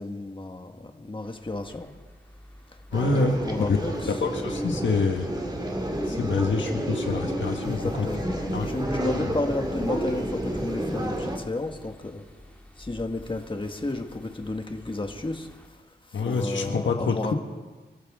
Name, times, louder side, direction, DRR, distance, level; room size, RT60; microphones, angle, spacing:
voice 1, 0.0-1.9 3.1-4.2 7.6-12.2 12.8-15.8 16.1-17.3, left 2 dB, 25° left, 4 dB, 1.6 m, -32 dB
sound 1, 1.2-15.7, left 1 dB, 5° left, 2.6 m, -47 dB
voice 2, 2.9-3.8 4.0-5.3 6.1-8.1 8.5-8.7 16.1-17.3, left 4 dB, 90° left, 4 dB, 1.6 m, -26 dB
sound 2, 2.9-11.4, right 1 dB, 20° right, 2.3 m, -30 dB
27.0 x 13.5 x 3.7 m, 1.3 s
wide cardioid pair, 70°, 19 cm